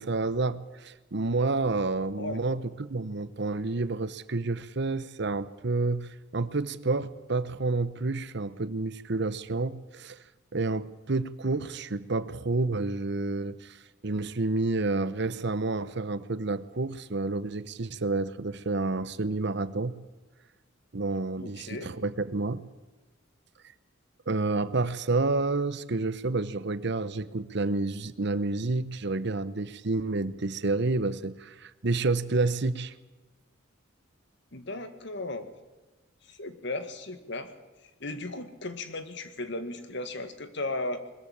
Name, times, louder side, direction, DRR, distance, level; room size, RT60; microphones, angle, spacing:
voice 1, 0.0-10.2 10.5-20.0 20.9-22.6 24.3-32.9, right 3 dB, 60° right, 14 dB, 0.9 m, -29 dB
voice 2, 21.4-21.9 34.5-35.5 36.2-37.5 38.0-41.0, left 2 dB, 60° left, 9 dB, 2.0 m, -36 dB
21.5 x 14.0 x 8.7 m, 1.2 s
head